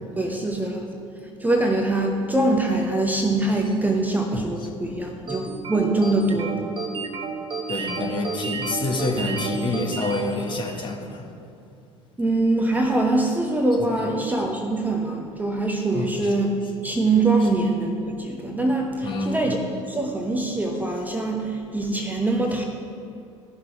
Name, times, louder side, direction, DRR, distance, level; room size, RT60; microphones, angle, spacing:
voice 1, 0.2-0.8 1.4-6.7 12.2-19.6 19.9-22.6, right 2 dB, 10° right, 2 dB, 0.9 m, -23 dB
voice 2, 4.3-4.7 7.7-11.3 15.9-16.3 19.0-19.5, left 2 dB, 30° left, 0 dB, 1.7 m, -27 dB
sound 1, 5.3-11.0, right 4 dB, 30° right, 1.1 m, -32 dB
14.0 x 6.0 x 4.7 m, 2.5 s
figure-of-eight pair, 65°, 16 cm